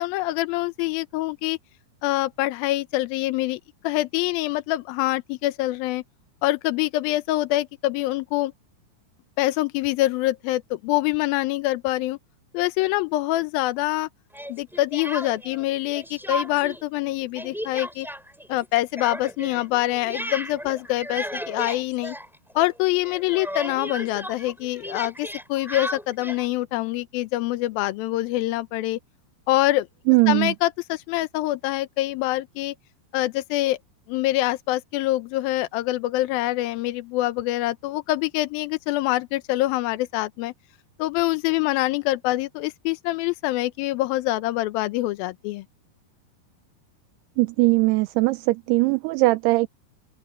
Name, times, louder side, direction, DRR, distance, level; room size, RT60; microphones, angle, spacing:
voice 1, 0.0-1.6 2.0-6.0 6.4-8.5 9.4-12.2 12.5-14.1 14.5-18.1 18.5-22.2 22.6-29.0 29.5-29.9 30.3-32.7 33.1-33.8 34.1-40.5 41.0-45.6, left 17 dB, 80° left, 2.2 m, -25 dB
Speech, 14.3-15.6 15.9-16.8 17.1-22.8 23.0-26.5, equal, ahead, 6.7 m, -35 dB
voice 2, 30.1-30.5 47.4-49.7, right 22 dB, 85° right, 2.5 m, -20 dB
open air
omnidirectional pair, 4.9 m